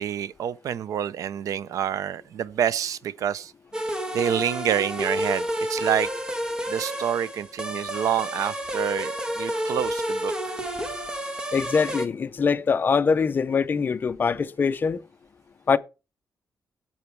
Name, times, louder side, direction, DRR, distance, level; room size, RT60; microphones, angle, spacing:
voice 1, 0.0-3.5 4.1-6.1 6.7-10.6, right 9 dB, 80° right, 0.5 m, -27 dB
sound 1, 3.7-12.1, equal, 15° right, 1.2 m, -30 dB
voice 2, 11.5-15.0 15.7-15.8, left 5 dB, 35° left, 0.5 m, -23 dB
8.5 x 7.9 x 4.5 m
wide cardioid pair, 150°, 6 cm